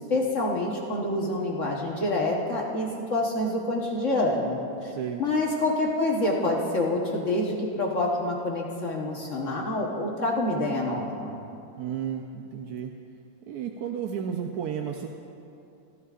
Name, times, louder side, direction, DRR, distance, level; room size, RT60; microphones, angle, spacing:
voice 1, 0.0-4.6 5.2-11.4, left 2 dB, 55° left, -2 dB, 1.5 m, -27 dB
voice 2, 4.8-5.2 11.8-12.9 13.5-15.1, right 8 dB, 90° right, 2 dB, 1.2 m, -32 dB
23.0 x 14.0 x 2.5 m, 2.7 s
omnidirectional pair, 1.6 m